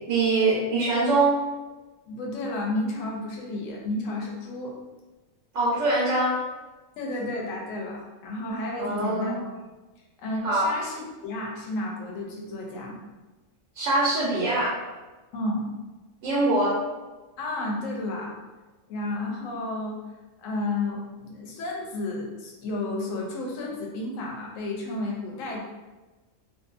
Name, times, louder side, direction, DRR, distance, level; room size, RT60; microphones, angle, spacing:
voice 1, 0.1-1.3 5.5-6.3 8.8-9.4 10.4-10.7 13.7-14.7 16.2-16.8, right 2 dB, 80° right, -8 dB, 1.1 m, -23 dB
voice 2, 2.1-4.8 7.0-9.3 10.2-12.9 15.3-15.7 17.4-18.3 18.9-20.0 20.4-25.6, left 2 dB, 80° left, -2 dB, 1.0 m, -32 dB
2.6 x 2.5 x 2.4 m, 1.2 s
omnidirectional pair, 1.3 m